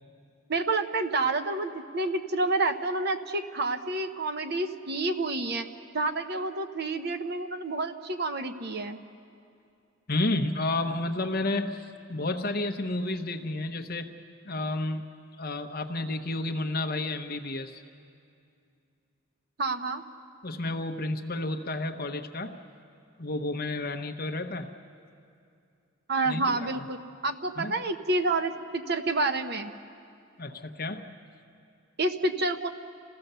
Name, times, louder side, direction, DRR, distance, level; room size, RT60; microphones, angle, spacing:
voice 1, 0.5-5.7 5.9-9.0 19.6-20.0 26.1-29.7 32.0-32.7, right 2 dB, 50° right, 7 dB, 0.9 m, -29 dB
voice 2, 10.1-15.0 15.4-17.8 20.4-22.6 23.2-24.7 26.3-26.9 27.6-27.7 30.4-31.1, left 2 dB, 45° left, 6 dB, 1.0 m, -31 dB
28.0 x 16.0 x 6.8 m, 2.5 s
head